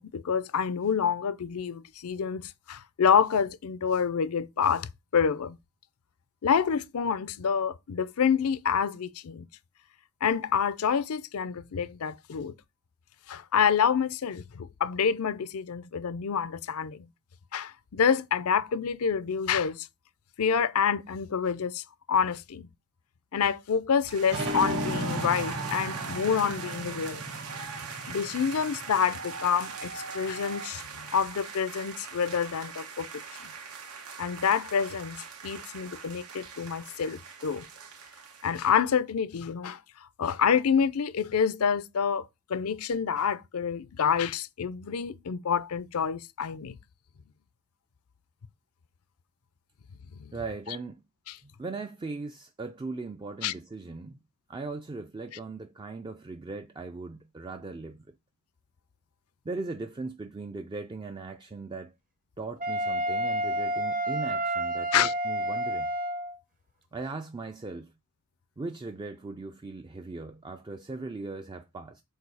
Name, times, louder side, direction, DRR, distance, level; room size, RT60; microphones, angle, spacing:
voice 1, 0.0-5.6 6.4-9.5 10.2-12.5 13.3-17.1 17.5-19.9 20.4-22.7 23.3-27.2 28.1-33.5 34.2-37.7 38.4-39.8 40.2-46.8 50.1-50.3 50.7-50.8 51.3-51.4 53.4-53.5 64.9-65.1, left 7 dB, 70° left, 0.5 m, -27 dB
sound 1, 24.0-38.6, right 5 dB, 85° right, 1.0 m, -40 dB
sound 2, 24.3-29.5, equal, 55° right, 1.8 m, -35 dB
voice 2, 50.3-51.0 51.4-54.2 54.5-58.0 59.4-61.9 62.4-65.9 66.9-67.9 68.6-72.0, right 3 dB, 20° right, 0.4 m, -39 dB
Wind instrument woodwind instrument, 62.6-66.4, right 1 dB, 40° right, 0.9 m, -29 dB
7.9 x 2.7 x 4.7 m
head